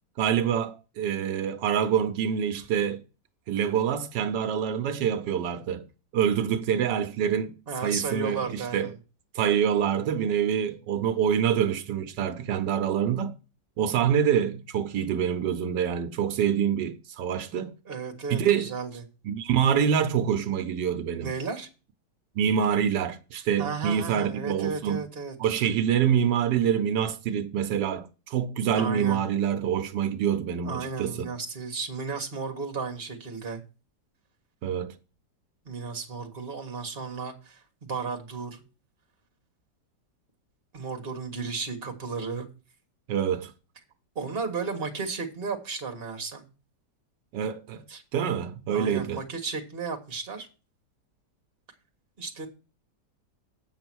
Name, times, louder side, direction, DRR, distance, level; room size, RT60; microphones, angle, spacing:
voice 1, 0.2-3.0 3.5-5.8 6.1-7.5 7.8-8.9 9.3-13.3 13.8-17.7 18.3-18.7 19.2-21.3 22.3-25.0 25.4-31.3 34.6-34.9 43.1-43.5 47.3-47.8 48.1-49.2, right 8 dB, 85° right, 1.4 m, -26 dB
voice 2, 7.7-8.9 17.9-19.0 21.2-21.7 23.6-25.3 28.8-29.2 30.6-33.6 35.7-38.6 40.7-42.5 44.2-46.5 47.9-48.0 48.7-50.5 52.2-52.5, right 5 dB, 35° right, 1.8 m, -34 dB
8.4 x 6.9 x 6.2 m
omnidirectional pair, 1.9 m